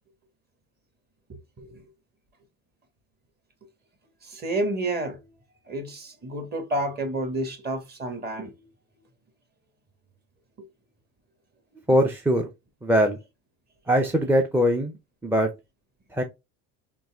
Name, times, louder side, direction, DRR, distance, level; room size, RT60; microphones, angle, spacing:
voice 1, 1.3-1.8 4.2-5.2 5.7-8.5, right 1 dB, 30° right, 1.2 m, -30 dB
voice 2, 11.9-12.5 12.8-13.2 13.9-14.9 15.2-15.5 16.1-16.2, equal, 5° right, 0.5 m, -21 dB
4.0 x 2.5 x 3.4 m
cardioid pair, 115°, 31 cm